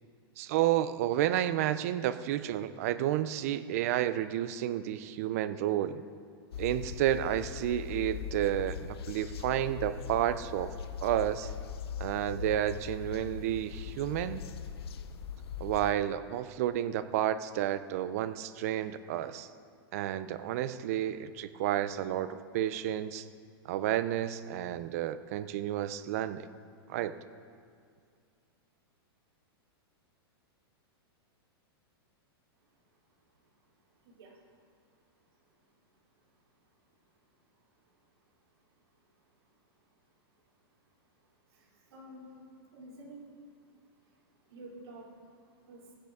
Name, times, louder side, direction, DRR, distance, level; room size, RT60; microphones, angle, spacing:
voice 1, 0.4-6.0 6.6-10.7 11.0-11.5 12.0-14.4 15.6-19.5 19.9-23.3 23.6-26.5 26.9-27.1, right 12 dB, 35° right, 13 dB, 0.4 m, -31 dB
sound 1, 6.5-15.9, left 8 dB, 75° left, 0.6 m, -41 dB
voice 2, 33.8-34.5 34.8-34.9 35.4-35.7 36.1-36.2 37.1-38.0 38.8-38.9 39.3-39.5 40.0-40.4 41.2-43.4 43.8-45.9, right 1 dB, 80° right, -4 dB, 3.3 m, -53 dB
15.5 x 9.9 x 3.6 m, 2.1 s
supercardioid pair, 170°, 13 cm